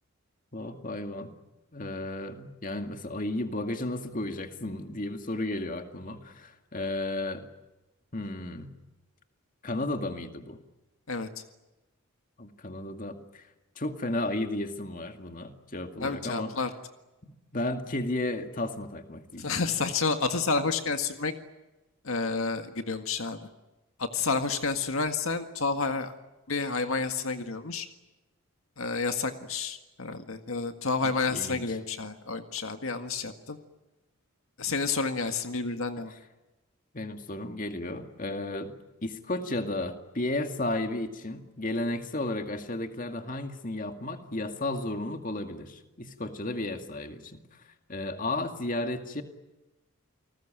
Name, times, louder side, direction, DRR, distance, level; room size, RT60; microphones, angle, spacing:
voice 1, 0.5-1.3 1.7-7.5 8.1-8.7 9.6-10.6 12.4-13.5 13.8-16.6 17.2-19.6 31.0-31.8 36.1-36.2 36.9-38.7 39.0-47.4 47.9-49.2, left 2 dB, 40° left, 6 dB, 2.2 m, -33 dB
voice 2, 16.0-16.7 19.4-21.3 22.0-23.4 24.0-26.1 26.5-27.9 28.8-33.6 34.6-36.1, left 4 dB, 75° left, 7 dB, 1.8 m, -30 dB
29.5 x 20.0 x 9.1 m, 1.0 s
head